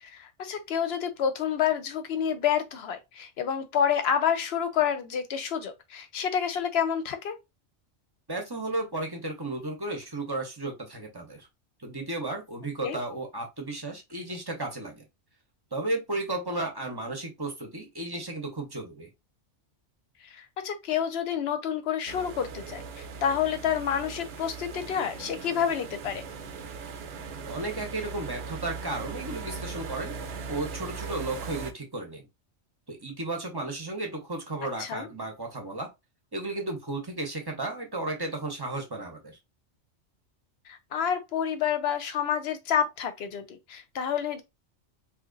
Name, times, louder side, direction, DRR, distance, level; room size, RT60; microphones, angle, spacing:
voice 1, 0.0-7.4 12.8-13.0 20.3-26.2 34.8-35.1 40.7-44.4, left 8 dB, 65° left, 0.8 m, -29 dB
voice 2, 8.3-11.5 11.8-15.0 15.7-19.1 27.5-30.1 30.5-32.3 32.9-35.9 36.3-39.4, right 2 dB, 25° right, 0.7 m, -34 dB
sound 1, 22.1-31.7, right 5 dB, 65° right, 0.8 m, -39 dB
2.8 x 2.4 x 3.8 m
omnidirectional pair, 1.2 m